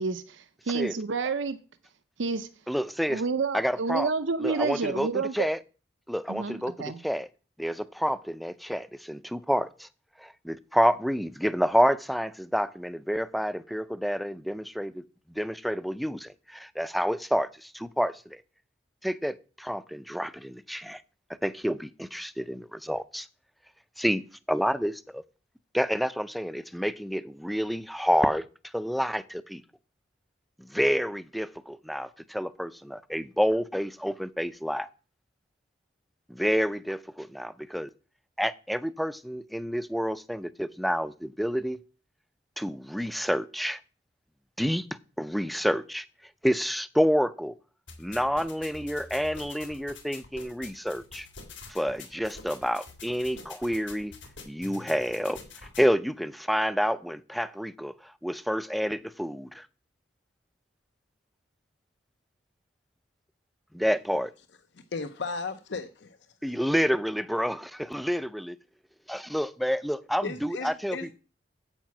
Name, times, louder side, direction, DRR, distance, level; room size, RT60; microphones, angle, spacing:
voice 1, 0.0-1.6 2.2-2.5 3.1-5.5 6.3-7.0, right 4 dB, 90° right, 0.7 m, -29 dB
voice 2, 2.7-3.2 3.5-4.1 4.4-5.6 6.1-7.3 7.6-9.9 10.2-15.0 15.4-18.4 19.0-21.0 21.4-23.3 24.0-24.2 24.5-25.2 25.7-28.4 28.7-29.6 30.7-34.9 36.3-37.9 38.4-41.8 42.6-43.8 44.6-44.9 45.2-46.1 46.4-47.5 48.0-51.3 51.7-54.1 54.5-55.4 55.8-59.7 63.7-64.3 66.4-68.6 69.1-71.1, equal, ahead, 0.4 m, -29 dB
sound 1, 47.9-55.9, left 4 dB, 85° left, 3.2 m, -46 dB
voice 3, 64.9-66.2 70.2-71.1, left 4 dB, 70° left, 0.7 m, -35 dB
9.0 x 8.3 x 6.0 m
head